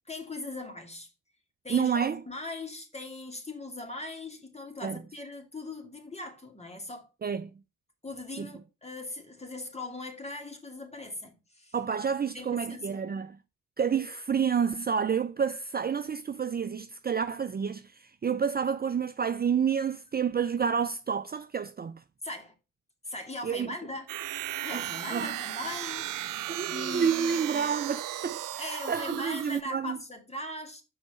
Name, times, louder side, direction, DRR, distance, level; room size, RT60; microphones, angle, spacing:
voice 1, 0.1-1.1 1.6-7.1 8.0-11.7 12.3-13.1 22.2-22.5 23.0-24.1 24.6-26.1 26.7-27.7 28.6-30.8, left 2 dB, 20° left, 2.9 m, -40 dB
voice 2, 1.7-2.2 4.8-5.0 7.2-7.5 8.4-8.5 11.7-13.4 13.8-22.0 23.4-23.7 24.7-24.8 25.1-25.4 26.5-30.0, right 7 dB, 30° right, 0.6 m, -29 dB
sound 1, 24.1-29.6, right 13 dB, 80° right, 0.8 m, -35 dB
6.5 x 4.8 x 6.4 m
supercardioid pair, 60°, 32 cm